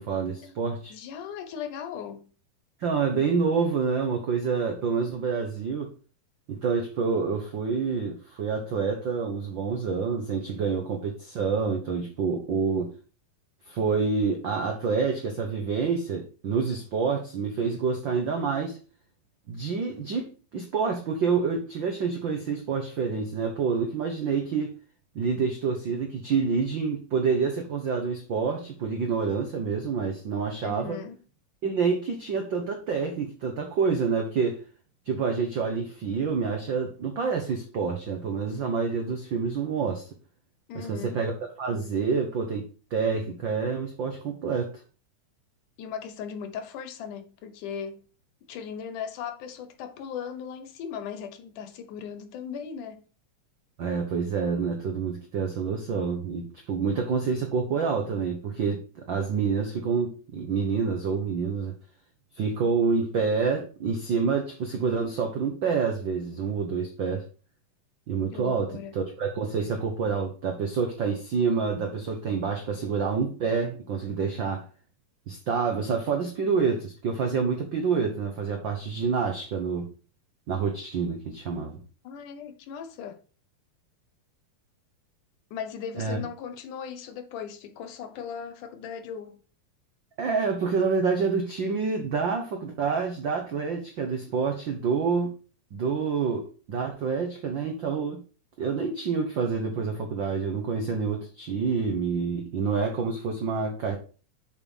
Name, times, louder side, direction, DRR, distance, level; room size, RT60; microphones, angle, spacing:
voice 1, 0.0-1.0 2.8-5.9 6.5-12.9 13.7-18.8 19.5-24.7 25.1-31.0 31.6-34.6 35.0-40.0 40.7-42.6 42.9-44.7 53.8-61.7 62.3-67.2 68.1-74.6 75.3-79.9 80.5-81.8 86.0-86.2 90.2-95.3 95.7-98.2 98.6-104.0, right 5 dB, 80° right, 1.0 m, -27 dB
voice 2, 0.9-2.3 30.6-31.2 40.7-41.2 45.8-48.0 48.5-53.0 68.3-69.0 82.0-83.2 85.5-89.4, left 7 dB, 75° left, 2.4 m, -38 dB
7.2 x 5.3 x 5.5 m
omnidirectional pair, 3.8 m